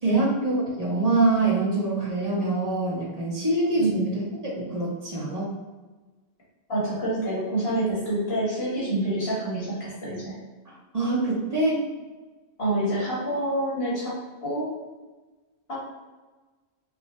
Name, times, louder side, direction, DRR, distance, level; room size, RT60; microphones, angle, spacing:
voice 1, 0.0-5.5 10.7-11.8, right 2 dB, 35° right, -5 dB, 1.2 m, -25 dB
voice 2, 6.7-10.4 12.6-14.1 14.4-14.7 15.7-15.8, right 1 dB, 60° left, -8 dB, 1.8 m, -27 dB
5.0 x 2.2 x 3.1 m, 1.2 s
omnidirectional pair, 1.1 m